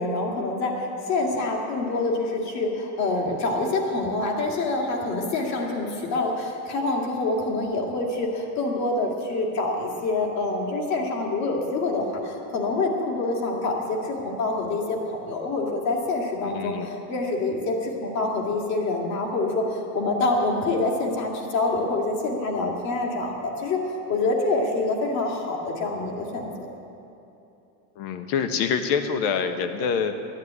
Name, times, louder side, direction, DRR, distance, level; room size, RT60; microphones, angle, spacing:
voice 1, 0.0-26.5, left 2 dB, 35° left, 0 dB, 2.3 m, -26 dB
voice 2, 16.4-16.9 28.0-30.2, left 6 dB, 50° left, 7 dB, 1.3 m, -26 dB
12.5 x 10.5 x 9.5 m, 2.9 s
supercardioid pair, 155°, 47 cm